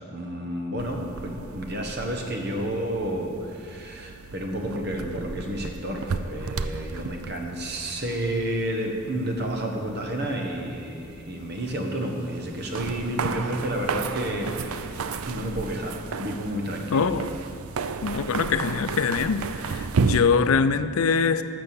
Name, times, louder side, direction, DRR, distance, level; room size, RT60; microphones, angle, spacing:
voice 1, 0.1-17.1, right 1 dB, 50° right, 2 dB, 1.4 m, -31 dB
sound 1, 0.8-20.2, right 5 dB, 90° right, 0.5 m, -34 dB
voice 2, 16.9-17.3 18.0-19.4 19.7-21.4, left 5 dB, 85° left, 12 dB, 0.5 m, -23 dB
12.5 x 6.8 x 7.2 m, 2.5 s
head